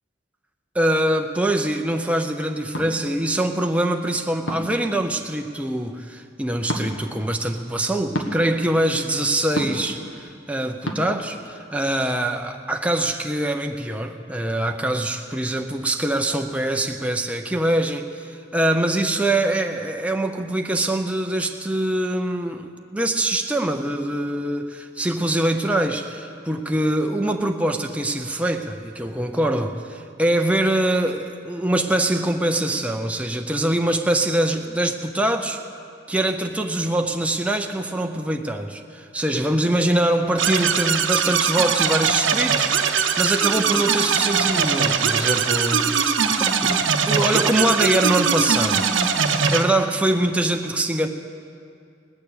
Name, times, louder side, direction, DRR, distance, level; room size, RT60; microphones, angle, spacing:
voice 1, 0.7-35.6 36.1-42.7 43.2-46.1 46.6-48.9 49.3-51.1, right 1 dB, 5° right, 4 dB, 0.5 m, -23 dB
sound 1, 2.7-2.9 4.5-4.8 6.7-6.9 8.1-8.3 9.6-9.9 10.9-11.0, equal, 75° left, 1.4 m, -27 dB
sound 2, 40.4-49.6, right 6 dB, 75° right, 0.8 m, -21 dB
19.0 x 6.7 x 8.4 m, 2.3 s
head